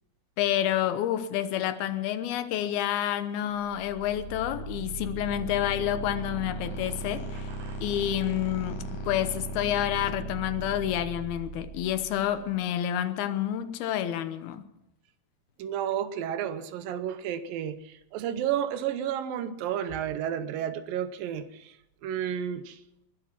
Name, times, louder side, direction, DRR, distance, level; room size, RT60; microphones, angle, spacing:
voice 1, 0.4-7.5 7.8-14.7, left 11 dB, 85° left, 2.9 m, -29 dB
sound 1, 3.6-12.5, right 1 dB, 55° left, 5.5 m, -37 dB
voice 2, 15.6-21.7 22.0-22.8, right 9 dB, 75° right, 2.5 m, -32 dB
21.0 x 11.5 x 6.0 m
omnidirectional pair, 4.3 m